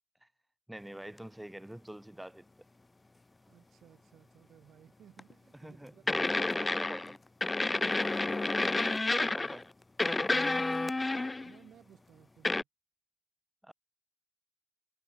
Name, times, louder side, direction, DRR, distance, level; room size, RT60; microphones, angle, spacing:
voice 1, 0.7-2.4 5.5-7.2 7.8-8.0 9.2-9.7 10.4-10.5 13.6-13.7, right 1 dB, 5° right, 5.0 m, -46 dB
voice 2, 3.5-6.9 9.2-9.5 10.7-12.7, right 10 dB, 70° right, 4.6 m, -60 dB
sound 1, 5.2-5.3 6.1-7.2 7.4-9.6 10.0-11.5 12.4-12.6, left 2 dB, 20° left, 0.7 m, -30 dB
cardioid pair, 90°, 0 cm